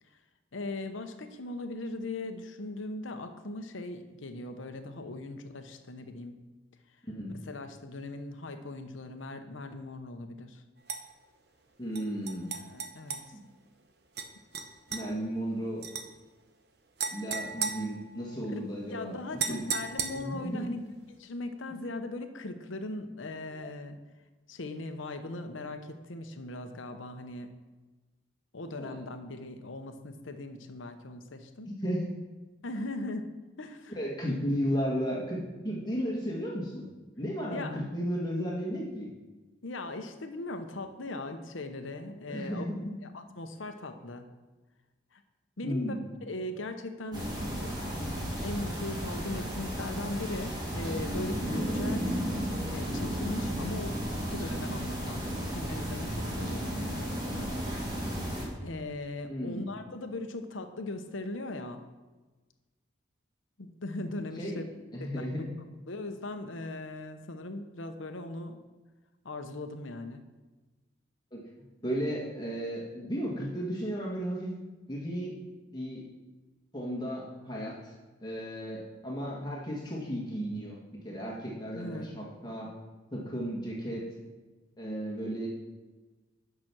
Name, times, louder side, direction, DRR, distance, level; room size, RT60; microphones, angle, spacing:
voice 1, 0.5-6.4 7.3-10.6 12.5-13.4 18.5-18.6 18.9-20.8 21.2-24.0 24.5-27.5 28.5-31.7 32.6-33.3 33.6-33.9 37.5-37.8 39.6-42.6 43.1-44.3 45.1-45.2 45.6-46.0 46.2-52.1 52.7-57.5 58.6-61.8 63.6-64.6 65.0-65.3 65.9-68.6 69.2-70.2 81.7-82.1, left 2 dB, 85° left, 7 dB, 0.9 m, -39 dB
sound 1, 10.9-11.0 12.0-13.2 14.2-14.3 14.5-15.0 15.8-16.1 17.0-18.5 19.4-20.5, right 6 dB, 55° right, 0.8 m, -35 dB
voice 2, 11.8-12.5 13.3-13.4 14.9-15.9 17.1-19.6 20.1-20.7 23.6-23.7 28.8-29.0 31.6-32.0 33.9-36.9 37.2-39.1 42.3-43.0 45.6-46.0 59.3-59.7 64.3-64.6 64.9-65.6 71.3-71.4 71.8-74.5 74.9-75.4 75.7-76.0 76.7-78.0 78.2-80.8 81.0-82.7 83.1-84.1 84.8-85.5, equal, 20° left, -3 dB, 1.6 m, -34 dB
sound 2, 47.1-58.5, equal, 20° right, 1.9 m, -33 dB
8.9 x 6.1 x 6.1 m, 1.2 s
head